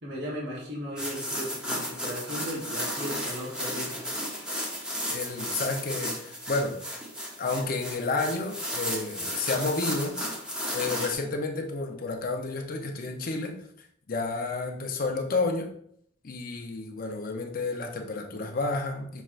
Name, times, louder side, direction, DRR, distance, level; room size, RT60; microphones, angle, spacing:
voice 1, 0.0-4.4, equal, 65° right, -5 dB, 1.2 m, -37 dB
sound 1, 1.0-11.1, equal, 5° right, 0.9 m, -34 dB
voice 2, 5.1-6.9 7.4-10.2 10.7-13.6 14.1-15.7 16.2-19.2, left 3 dB, 50° left, 3 dB, 0.7 m, -30 dB
5.9 x 3.2 x 2.5 m, 0.68 s
head